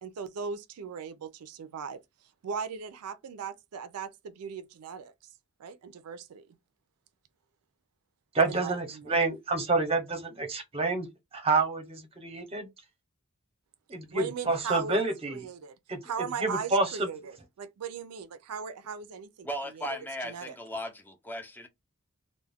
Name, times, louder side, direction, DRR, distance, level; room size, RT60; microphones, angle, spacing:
voice 1, 0.0-5.1 5.6-6.6 8.5-9.1 14.1-15.8 16.0-19.5 19.7-19.9 20.2-20.6, right 6 dB, 90° right, 0.4 m, -38 dB
voice 2, 8.3-11.1 11.3-12.7 13.9-15.4 15.9-16.0 16.4-17.1, right 3 dB, 25° right, 0.7 m, -28 dB
voice 3, 19.4-21.7, equal, 10° left, 0.4 m, -37 dB
2.3 x 2.1 x 3.3 m
head